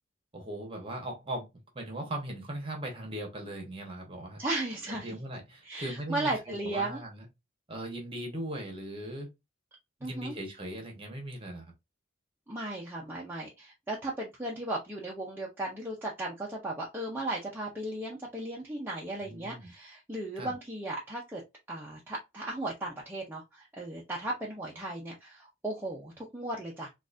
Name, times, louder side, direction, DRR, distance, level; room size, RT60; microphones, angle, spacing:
voice 1, 0.3-1.5 1.7-4.4 4.9-7.3 7.7-9.3 10.0-11.7 19.2-19.7 20.4-20.5, right 1 dB, 25° right, 1.0 m, -39 dB
voice 2, 4.4-5.2 5.6-7.0 10.0-10.3 12.5-21.4 21.7-26.9, right 2 dB, 10° right, 0.6 m, -36 dB
3.9 x 2.4 x 2.5 m
head